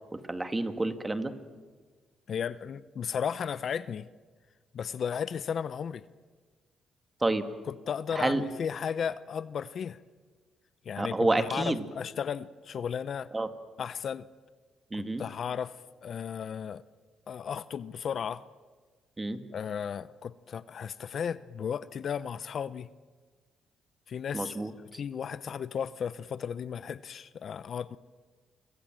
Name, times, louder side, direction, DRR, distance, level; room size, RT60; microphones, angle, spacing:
voice 1, 0.1-1.3 7.2-7.5 8.2-8.4 11.0-11.8 13.3-13.5 14.9-15.2 19.2-19.4 24.3-25.0, right 2 dB, 20° right, 8 dB, 2.1 m, -29 dB
voice 2, 2.3-4.1 4.7-6.0 7.7-10.0 10.8-13.3 13.8-14.3 14.9-15.7 16.0-16.8 17.3-18.4 19.5-22.9 24.1-24.6 24.9-28.0, left 7 dB, 55° left, 16 dB, 0.7 m, -34 dB
29.5 x 24.5 x 7.7 m, 1.4 s
cardioid pair, 90°, 0 cm